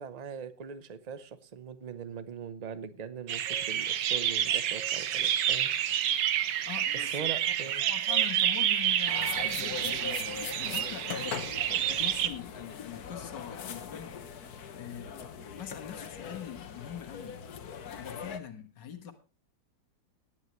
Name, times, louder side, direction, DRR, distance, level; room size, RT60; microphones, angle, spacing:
voice 1, 0.0-5.7 6.9-7.9, right 7 dB, 50° right, 13 dB, 0.4 m, -41 dB
sound 1, 3.3-12.3, right 10 dB, 90° right, 1.5 m, -29 dB
voice 2, 6.7-7.4 7.9-10.2 10.6-11.5 11.7-15.2 15.5-17.4 18.0-19.1, left 9 dB, 85° left, 6 dB, 2.0 m, -43 dB
sound 2, 9.1-18.4, left 7 dB, 65° left, 1.5 m, -41 dB
18.5 x 9.1 x 3.0 m, 0.31 s
omnidirectional pair, 1.8 m